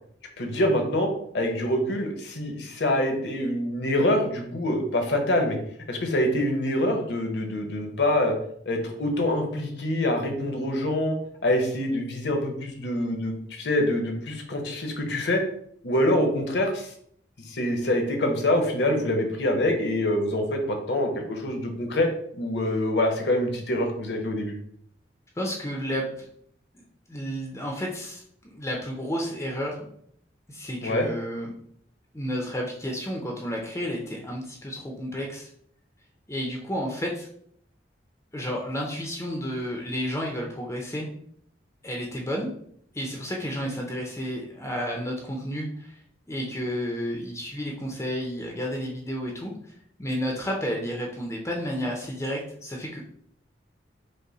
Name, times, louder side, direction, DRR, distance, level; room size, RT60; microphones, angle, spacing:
voice 1, 0.4-5.6 5.9-8.3 8.7-11.2 11.4-15.4 15.8-16.9 17.4-22.1 22.3-24.5 30.8-31.1, left 1 dB, 65° left, 4 dB, 0.9 m, -25 dB
voice 2, 25.4-26.3 26.7-29.9 30.5-31.5 32.1-35.5 36.3-37.3 38.3-41.1 41.8-42.5 42.9-46.0 46.3-49.5 50.0-53.0, equal, 15° left, 0 dB, 0.5 m, -31 dB
5.3 x 2.1 x 4.0 m, 0.66 s
head